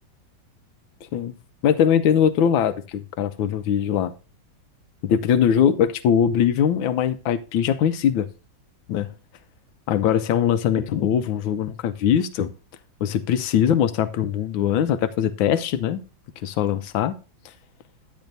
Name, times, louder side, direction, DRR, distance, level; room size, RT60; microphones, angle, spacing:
voice 1, 1.6-4.1 5.0-8.3 8.9-9.1 9.9-12.5 13.0-16.0 16.4-17.2, left 9 dB, 90° left, 11 dB, 1.4 m, -21 dB
10.5 x 9.1 x 2.6 m, 0.32 s
omnidirectional pair, 2.1 m